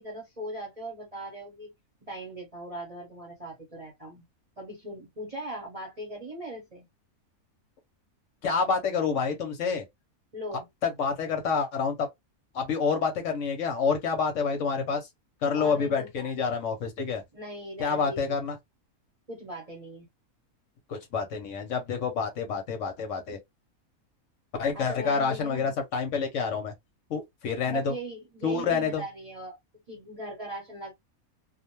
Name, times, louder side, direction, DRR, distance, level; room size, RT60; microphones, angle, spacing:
voice 1, 0.0-1.7 2.1-4.2 4.6-6.8 10.3-10.7 15.5-16.4 17.3-18.4 19.3-20.1 24.7-25.7 27.7-29.6 29.9-30.9, right 1 dB, 30° right, 0.8 m, -39 dB
voice 2, 8.4-9.8 10.8-12.1 12.5-15.1 15.4-17.2 17.8-18.6 20.9-23.4 24.6-26.7 27.1-27.9 28.4-29.0, left 5 dB, 65° left, 0.9 m, -28 dB
2.5 x 2.1 x 2.9 m
omnidirectional pair, 1.5 m